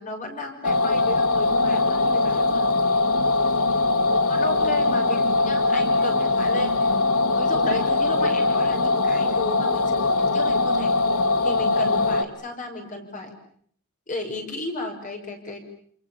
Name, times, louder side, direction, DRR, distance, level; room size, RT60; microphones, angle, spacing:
voice 1, 0.0-2.7 4.3-7.0 7.3-11.0 11.4-13.3 14.1-15.6, left 2 dB, 35° left, 5 dB, 6.0 m, -34 dB
sound 1, 0.6-12.2, left 3 dB, 90° left, 2.2 m, -21 dB
29.0 x 27.5 x 7.2 m, 0.62 s
head